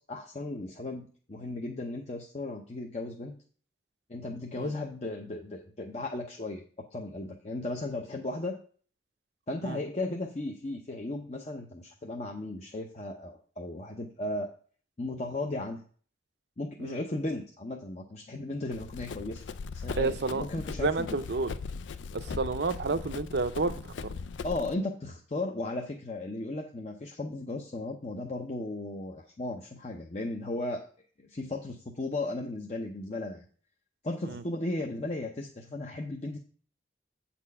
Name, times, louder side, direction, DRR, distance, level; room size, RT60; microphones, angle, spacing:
voice 1, 0.1-3.4 4.1-6.6 6.9-8.6 9.5-14.5 15.0-15.8 16.6-19.4 19.7-21.2 24.4-30.8 31.2-33.5 34.0-36.4, left 2 dB, 40° left, 0.7 m, -35 dB
Run, 18.7-24.7, left 4 dB, 90° left, 0.4 m, -39 dB
voice 2, 20.0-20.4 20.8-21.5 22.1-23.8 24.0-24.1 34.2-34.4, right 3 dB, 65° right, 0.6 m, -30 dB
8.3 x 4.3 x 5.5 m
head